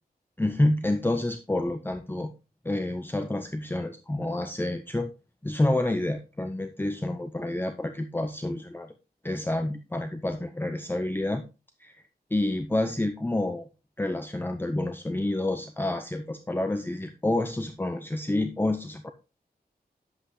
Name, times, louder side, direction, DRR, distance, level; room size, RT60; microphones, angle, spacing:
voice 1, 0.4-2.3 2.6-5.1 5.4-8.9 9.2-11.4 11.8-12.0 12.3-13.7 14.0-19.1, left 1 dB, 15° left, 7 dB, 0.7 m, -28 dB
10.5 x 7.8 x 3.2 m, 0.29 s
wide cardioid pair, 110°, 17 cm